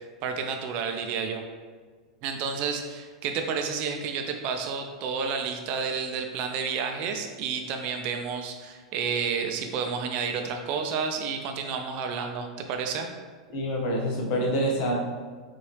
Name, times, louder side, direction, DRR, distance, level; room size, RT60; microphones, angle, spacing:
voice 1, 0.2-1.4 2.2-13.1, right 6 dB, 45° right, 4 dB, 0.6 m, -30 dB
voice 2, 13.5-15.0, equal, 45° left, -1 dB, 1.0 m, -26 dB
5.3 x 2.7 x 3.3 m, 1.5 s
figure-of-eight pair, 90°, 3 cm